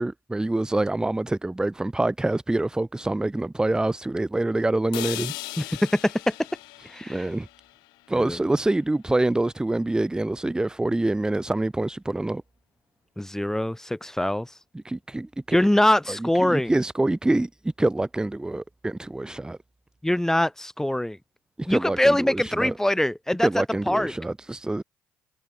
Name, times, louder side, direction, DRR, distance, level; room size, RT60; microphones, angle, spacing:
voice 1, 0.0-5.3 7.1-7.5 8.1-12.4 14.8-15.7 16.1-17.5 17.8-19.6 21.6-22.7 23.4-24.8, right 2 dB, 10° right, 0.6 m, -26 dB
sound 1, 4.9-8.9, left 24 dB, 80° left, 1.2 m, -39 dB
voice 2, 5.6-6.3 6.9-7.3 8.1-8.4 13.2-14.5 15.5-16.7 20.0-21.2 21.7-24.1, left 1 dB, 5° left, 1.3 m, -23 dB
hypercardioid pair, 60°, 7 cm